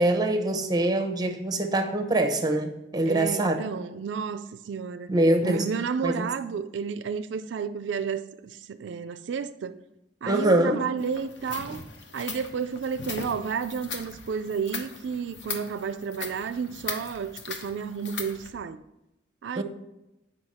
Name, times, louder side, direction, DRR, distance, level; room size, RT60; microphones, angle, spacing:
voice 1, 0.0-3.6 5.1-5.7 6.0-6.3 10.3-10.8 19.6-19.7, right 1 dB, 20° right, 0.8 m, -24 dB
voice 2, 3.1-5.1 5.4-9.8 10.2-11.8 12.1-18.8 19.4-19.6, right 6 dB, 80° right, 0.4 m, -31 dB
sound 1, 11.0-18.5, left 4 dB, 70° left, 0.9 m, -39 dB
7.9 x 5.3 x 4.2 m
head